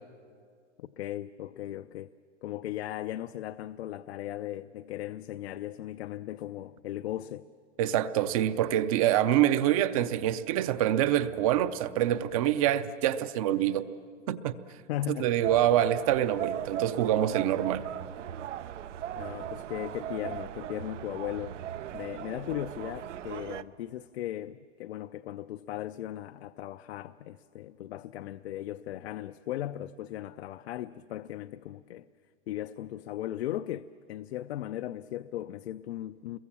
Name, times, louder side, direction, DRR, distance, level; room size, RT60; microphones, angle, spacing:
voice 1, 0.8-2.1 2.4-7.5 14.9-15.3 19.2-21.5 21.9-32.1 32.5-36.4, left 13 dB, 60° left, 0.6 m, -37 dB
voice 2, 7.8-13.9 14.3-14.6 15.1-17.9, right 11 dB, 30° right, 0.6 m, -26 dB
sound 1, 15.4-23.6, right 10 dB, 85° right, 0.9 m, -38 dB
27.0 x 22.5 x 7.3 m
hypercardioid pair, 160°, 36 cm